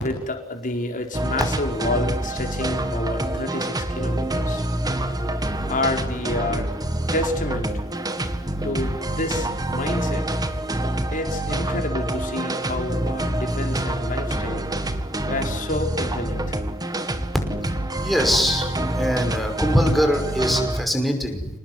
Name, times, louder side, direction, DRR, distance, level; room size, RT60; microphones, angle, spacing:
voice 1, 0.0-4.7 5.7-6.7 7.1-7.8 8.6-10.4 11.1-14.7 15.2-16.6, left 2 dB, 40° left, 4 dB, 4.9 m, -29 dB
sound 1, 1.1-20.8, right 1 dB, 20° right, 2.0 m, -26 dB
voice 2, 18.0-21.5, equal, ahead, 4 dB, 5.6 m, -22 dB
28.5 x 19.5 x 9.9 m, 0.98 s
head